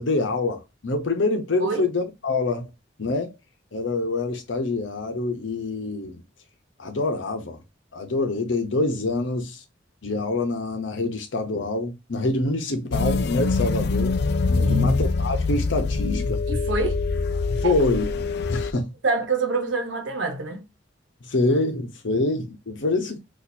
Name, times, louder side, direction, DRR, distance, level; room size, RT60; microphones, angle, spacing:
voice 1, 0.0-2.7 3.0-3.3 3.7-6.2 6.8-7.6 7.9-9.6 10.0-14.2 14.7-16.4 17.6-18.9 21.2-23.2, left 2 dB, 85° left, 0.9 m, -26 dB
sound 1, 12.9-18.7, left 3 dB, 60° left, 0.4 m, -24 dB
voice 2, 14.5-15.0 16.5-17.0 17.6-17.7 19.0-20.6, right 2 dB, 85° right, 0.9 m, -25 dB
4.2 x 2.6 x 2.6 m
head